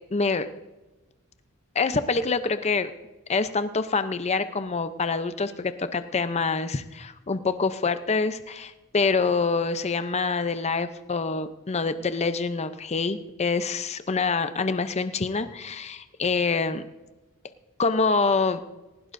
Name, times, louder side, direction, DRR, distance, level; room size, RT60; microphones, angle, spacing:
voice 1, 0.1-0.5 1.7-2.9 3.3-16.8 17.8-18.6, left 4 dB, 30° left, 11 dB, 0.6 m, -26 dB
18.5 x 16.5 x 2.6 m, 1.1 s
head